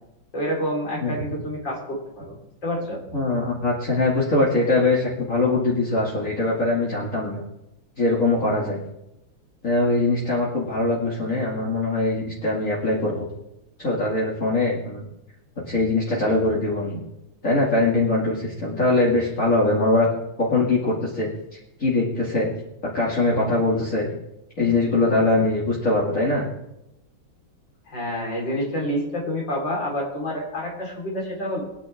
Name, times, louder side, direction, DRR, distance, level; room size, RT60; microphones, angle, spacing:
voice 1, 0.3-2.4 2.6-3.0 27.9-31.6, equal, 65° left, -3 dB, 5.0 m, -28 dB
voice 2, 3.1-7.4 8.0-8.8 9.6-13.3 13.8-15.0 15.7-17.0 17.4-20.1 20.4-21.3 21.8-22.5 22.9-24.1 24.6-26.5, left 2 dB, 40° left, -6 dB, 2.8 m, -22 dB
23.0 x 10.0 x 3.6 m, 0.88 s
omnidirectional pair, 2.2 m